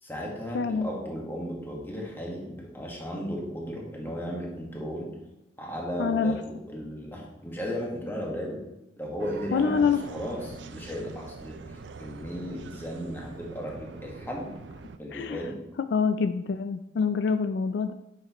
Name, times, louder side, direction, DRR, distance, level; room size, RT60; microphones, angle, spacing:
voice 1, 0.0-5.1 5.6-8.6 9.0-14.5 15.0-15.6, equal, 10° left, -2 dB, 1.6 m, -35 dB
voice 2, 0.5-0.9 6.0-6.4 9.5-10.0 15.1-15.4 15.9-17.9, left 5 dB, 65° left, 10 dB, 0.3 m, -25 dB
sound 1, 9.2-15.0, right 4 dB, 85° right, 0.5 m, -44 dB
9.4 x 6.4 x 3.0 m, 0.91 s
head